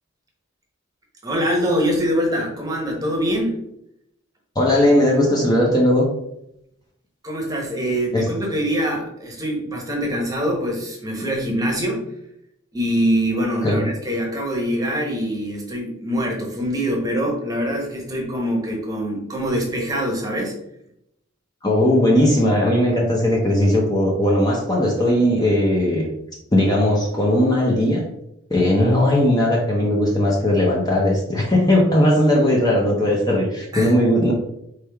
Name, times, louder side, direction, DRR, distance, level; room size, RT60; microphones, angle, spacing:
voice 1, 1.2-3.6 7.2-12.1 12.7-20.5 33.7-33.9, equal, 15° right, 0 dB, 0.9 m, -24 dB
voice 2, 4.6-6.1 8.1-8.3 13.6-13.9 21.6-26.1 26.5-28.0 28.5-34.3, left 1 dB, 20° left, -2 dB, 0.6 m, -18 dB
4.4 x 3.3 x 3.4 m, 0.79 s
head